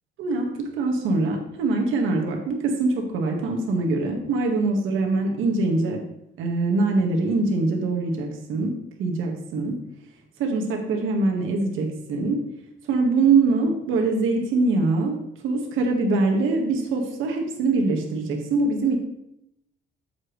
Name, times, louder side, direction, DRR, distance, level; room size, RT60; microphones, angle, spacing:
voice 1, 0.8-6.0 6.4-8.7 9.0-9.7 10.4-12.4 12.9-15.1 15.4-19.0, right 3 dB, 85° right, 1 dB, 1.6 m, -23 dB
8.1 x 7.3 x 3.2 m, 0.81 s
cardioid pair, 145°, 20 cm